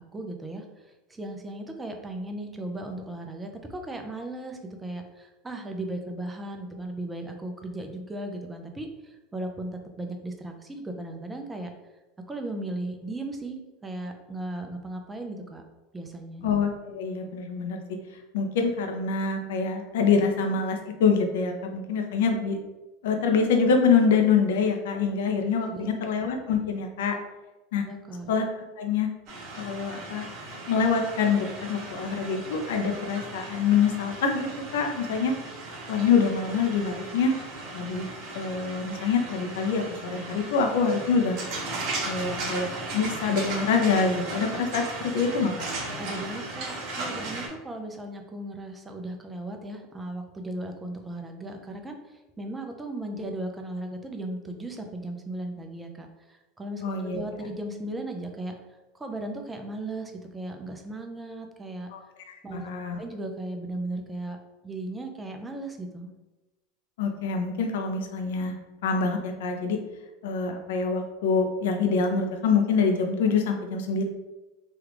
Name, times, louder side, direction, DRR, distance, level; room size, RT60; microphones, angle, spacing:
voice 1, 0.1-9.7 10.0-11.7 12.3-15.6 15.9-16.4 25.7-25.9 27.8-28.3 46.0-58.5 58.9-61.9 62.4-62.7 63.0-64.4 64.6-66.1, right 1 dB, 15° right, 4 dB, 0.5 m, -36 dB
voice 2, 16.4-17.8 18.3-22.6 23.0-27.1 27.7-27.8 28.3-28.5 28.8-29.1 29.6-30.3 30.7-34.5 34.7-35.3 35.9-37.3 37.7-38.1 38.3-41.4 42.0-45.5 56.8-57.2 61.9-62.0 62.3-63.0 67.0-68.5 68.8-69.8 70.2-74.0, left 5 dB, 80° left, 4 dB, 0.5 m, -25 dB
sound 1, 29.3-47.5, right 2 dB, 55° right, 0.9 m, -37 dB
3.1 x 2.4 x 3.3 m, 1.1 s
hypercardioid pair, 100°, 0 cm